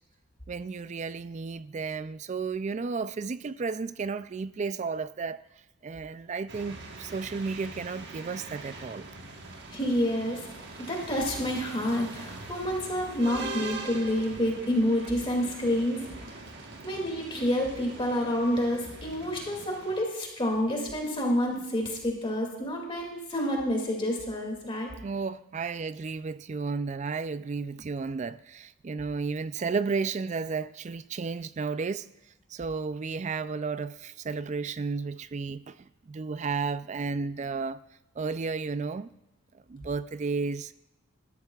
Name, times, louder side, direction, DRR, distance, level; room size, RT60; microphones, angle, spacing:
voice 1, 0.5-5.4 5.8-9.1 25.0-32.1 32.5-35.8 36.1-37.8 38.2-39.1 39.7-40.7, right 4 dB, 35° right, 0.3 m, -33 dB
sound 1, 6.5-20.0, right 3 dB, 55° right, 1.4 m, -42 dB
voice 2, 9.7-10.5 10.9-16.0 16.8-24.9, equal, 25° left, 2.3 m, -28 dB
19.0 x 13.0 x 2.4 m
head